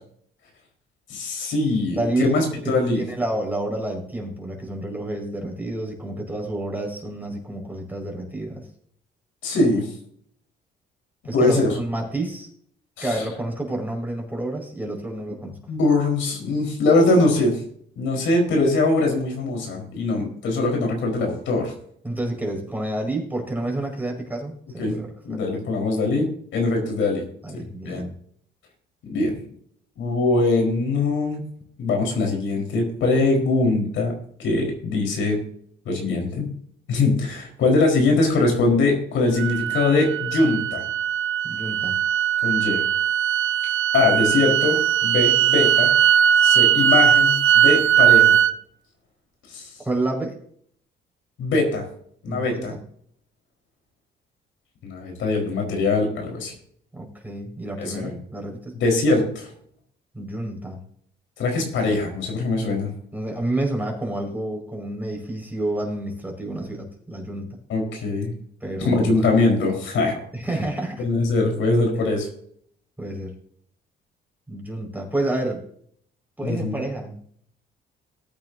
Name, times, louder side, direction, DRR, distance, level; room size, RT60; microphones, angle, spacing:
voice 1, 1.1-3.0 9.4-9.9 11.3-11.7 13.0-13.2 15.7-17.6 18.0-21.7 24.8-25.0 25.2-27.2 27.5-28.0 29.1-29.4 30.0-31.4 31.8-34.1 34.4-35.4 35.8-36.5 36.9-40.8 42.4-42.8 43.9-45.9 46.4-48.4 49.5-49.7 51.4-51.8 52.2-52.7 54.8-56.5 57.8-58.2 58.8-59.5 61.4-62.9 67.7-68.3 68.8-70.2 71.0-72.3 76.4-76.7, left 3 dB, 75° left, 1 dB, 4.5 m, -22 dB
voice 2, 1.9-8.7 11.2-12.5 13.0-15.6 20.2-20.3 22.0-25.4 27.4-28.1 41.4-42.0 49.9-50.4 52.3-52.8 56.9-58.8 60.1-60.8 63.1-67.6 68.6-69.2 70.3-71.0 73.0-73.3 74.5-75.6 76.4-77.2, right 1 dB, 10° right, 1 dB, 5.2 m, -29 dB
sound 1, 39.4-48.5, right 9 dB, 80° right, 0.6 m, -19 dB
19.5 x 8.9 x 2.7 m, 0.62 s
cardioid pair, 90°, 20 cm